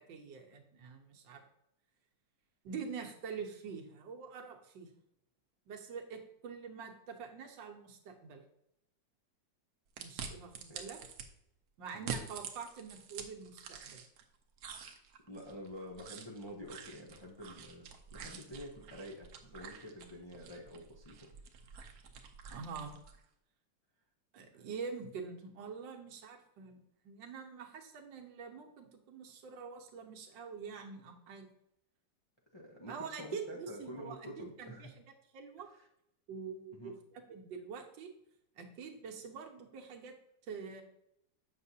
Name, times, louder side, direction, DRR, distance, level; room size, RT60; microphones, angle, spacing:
voice 1, 0.0-1.4 2.6-4.9 5.7-8.4 10.0-11.0 11.8-14.0 22.5-22.9 24.3-26.8 27.0-31.5 32.9-35.0 35.3-35.7 36.3-38.1 38.5-40.1 40.4-40.8, right 6 dB, 80° right, 3 dB, 1.6 m, -45 dB
sound 1, 10.0-11.3 11.9-14.2 14.6-23.2, right 6 dB, 65° right, 1.0 m, -47 dB
voice 2, 15.3-17.9 18.1-21.3 24.5-24.6 32.5-34.9 35.7-35.8 36.7-36.9, left 1 dB, 40° left, -2 dB, 0.4 m, -48 dB
7.4 x 5.9 x 2.7 m, 0.78 s
omnidirectional pair, 2.0 m